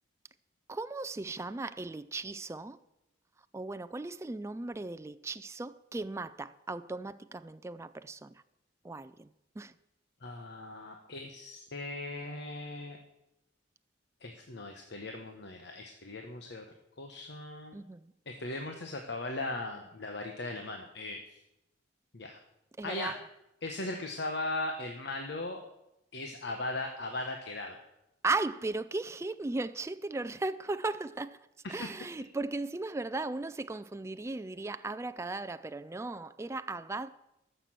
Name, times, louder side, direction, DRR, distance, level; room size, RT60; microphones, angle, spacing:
voice 1, 0.7-2.8 3.5-8.3 8.8-9.3 9.6-9.7 17.7-18.1 22.8-23.2 28.2-31.4 31.7-37.1, right 3 dB, 15° right, 0.3 m, -36 dB
voice 2, 10.2-13.0 14.2-16.6 17.0-17.7 18.3-21.2 22.1-22.4 22.8-23.1 23.6-25.6 26.1-27.8 31.6-31.9, left 2 dB, 60° left, 1.1 m, -38 dB
13.5 x 6.7 x 7.5 m
head